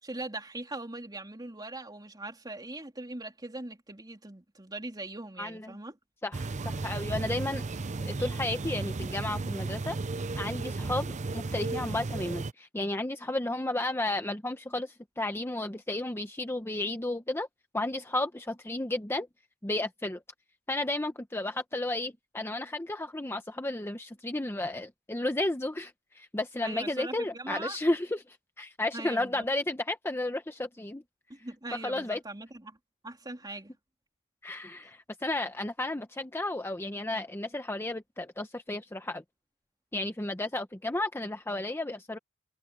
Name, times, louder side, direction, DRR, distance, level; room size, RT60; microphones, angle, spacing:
voice 1, 0.0-6.0 26.6-27.8 28.9-29.5 31.3-32.8 33.0-33.7, right 2 dB, 20° right, 3.3 m, -41 dB
voice 2, 5.4-5.7 6.2-7.6 8.1-10.0 10.4-17.5 17.7-19.3 19.6-20.2 20.7-31.0 31.8-32.2 34.4-39.2 39.9-42.2, left 2 dB, 10° left, 0.8 m, -33 dB
sound 1, 6.3-12.5, right 3 dB, 35° right, 0.6 m, -34 dB
head